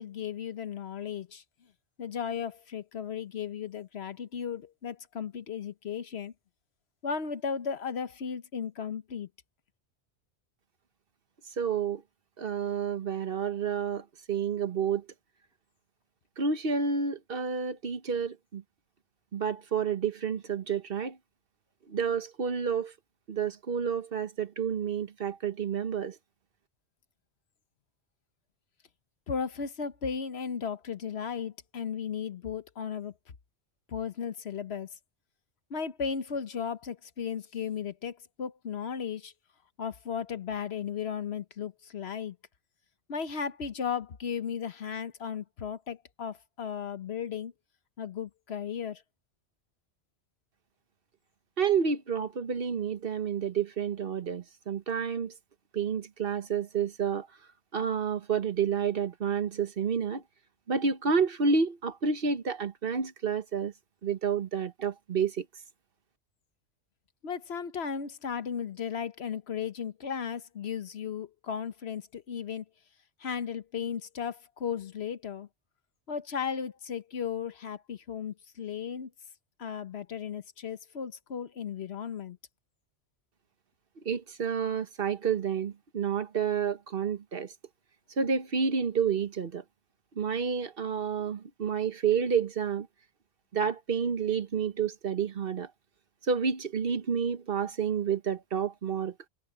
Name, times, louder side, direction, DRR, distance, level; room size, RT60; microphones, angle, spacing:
voice 1, 0.0-1.4 2.0-6.3 7.0-9.3 29.3-33.1 33.9-34.9 35.7-39.3 39.8-42.4 43.1-47.5 48.0-49.0 67.2-72.6 73.2-75.5 76.1-79.1 79.6-82.4, left 7 dB, 65° left, 1.2 m, -35 dB
voice 2, 11.6-12.0 12.4-15.0 16.4-18.6 19.3-21.2 21.9-22.9 23.3-26.1 51.6-55.3 55.7-57.3 57.7-60.2 60.7-63.7 64.0-65.4 84.0-87.5 88.2-89.6 90.2-92.9 93.5-95.7 96.3-99.1, right 6 dB, 55° right, 1.2 m, -29 dB
omnidirectional pair, 1.2 m